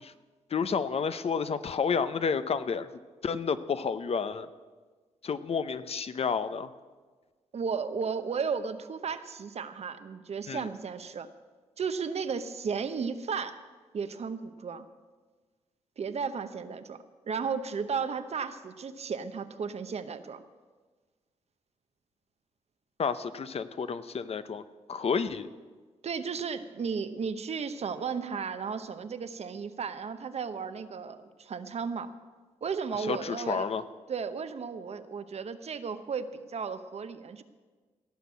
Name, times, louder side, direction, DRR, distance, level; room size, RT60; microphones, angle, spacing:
voice 1, 0.5-2.9 3.2-4.5 5.2-6.7 10.5-10.7 23.0-24.6 24.9-25.5 33.0-33.8, left 6 dB, 55° left, 12 dB, 0.7 m, -30 dB
voice 2, 7.5-11.3 11.8-13.6 13.9-14.9 16.0-20.4 26.0-32.1 32.6-33.7 34.1-37.4, right 6 dB, 55° right, 10 dB, 0.9 m, -34 dB
17.0 x 6.0 x 8.3 m, 1.4 s
cardioid pair, 75°, 13 cm